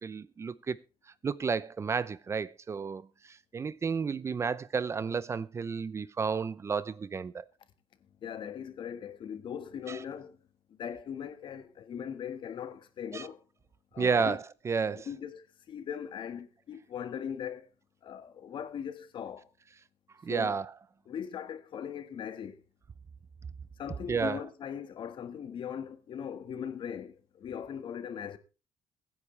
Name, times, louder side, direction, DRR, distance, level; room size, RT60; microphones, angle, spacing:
voice 1, 0.0-0.8 1.2-7.4 9.9-10.0 13.1-13.3 14.0-15.1 20.2-20.7 24.1-24.4, right 5 dB, 30° right, 0.6 m, -32 dB
voice 2, 8.2-10.4 10.7-13.4 13.9-14.4 15.0-17.7 18.0-19.5 20.3-20.6 21.1-22.6 23.8-28.4, left 8 dB, 55° left, 1.6 m, -39 dB
23.5 x 9.7 x 3.3 m
cardioid pair, 140°, 10 cm